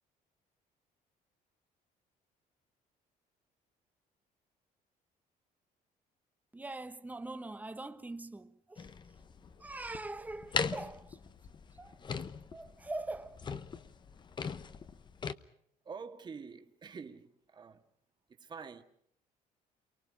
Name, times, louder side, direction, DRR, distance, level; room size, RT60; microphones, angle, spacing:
voice 1, 6.5-8.9 9.6-11.2 11.7-12.0 12.5-13.4, right 2 dB, 10° right, 1.2 m, -42 dB
sound 1, 8.8-15.3, left 5 dB, 30° left, 1.0 m, -40 dB
voice 2, 15.8-17.8 18.3-18.8, right 5 dB, 30° right, 1.9 m, -47 dB
29.0 x 24.0 x 5.3 m
cardioid pair, 140°, 15 cm